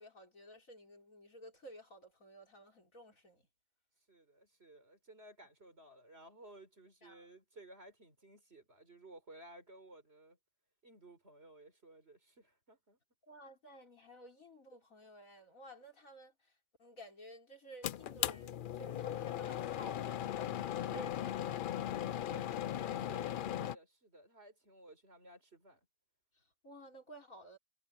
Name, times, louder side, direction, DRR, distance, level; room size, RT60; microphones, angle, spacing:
voice 1, 0.0-3.4 7.0-7.3 13.2-16.5 16.8-21.7 26.4-27.6, right 1 dB, 90° left, 5.2 m, -54 dB
voice 2, 4.1-10.4 10.8-13.0 22.2-25.8, right 1 dB, 50° right, 4.9 m, -57 dB
sound 1, 17.8-23.8, left 10 dB, 65° left, 0.5 m, -38 dB
omnidirectional pair, 1.4 m